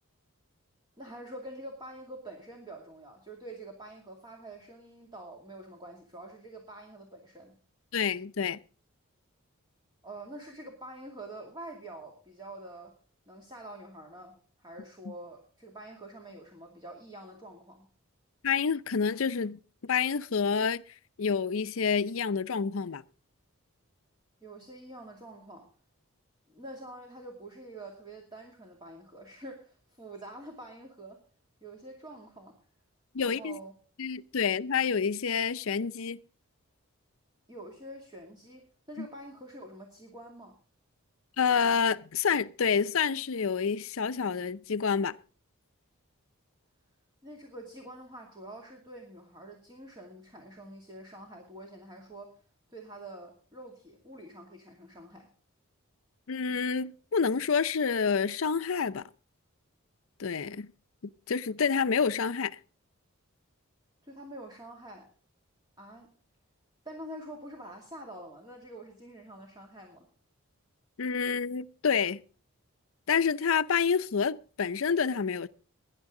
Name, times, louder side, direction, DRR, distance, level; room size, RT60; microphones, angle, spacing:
voice 1, 1.0-7.5 10.0-13.0 13.3-17.9 24.4-25.7 26.5-31.2 31.6-32.6 33.2-33.7 37.5-40.6 47.2-52.4 52.7-55.3 64.0-65.1 65.8-66.1 66.8-70.1, right 1 dB, 20° right, 2.5 m, -46 dB
voice 2, 7.9-8.6 18.4-20.8 21.2-23.0 33.1-33.6 34.0-36.2 39.0-39.1 41.4-45.1 56.3-59.0 60.2-60.7 61.0-62.6 71.0-72.2 73.1-75.5, left 6 dB, 70° left, 0.5 m, -28 dB
19.0 x 10.5 x 3.8 m
head